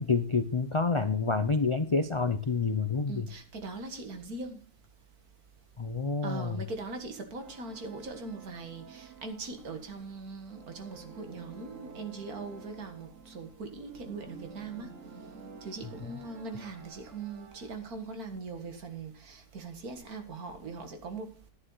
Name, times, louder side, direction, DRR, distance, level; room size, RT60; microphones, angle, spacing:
voice 1, 0.0-3.3 5.8-6.6, left 4 dB, 50° left, 0.3 m, -28 dB
voice 2, 3.1-4.6 6.2-14.9 15.6-21.3, right 3 dB, 75° right, 2.2 m, -41 dB
sound 1, 7.4-17.7, right 5 dB, 60° right, 1.6 m, -51 dB
10.5 x 9.9 x 3.9 m
omnidirectional pair, 1.6 m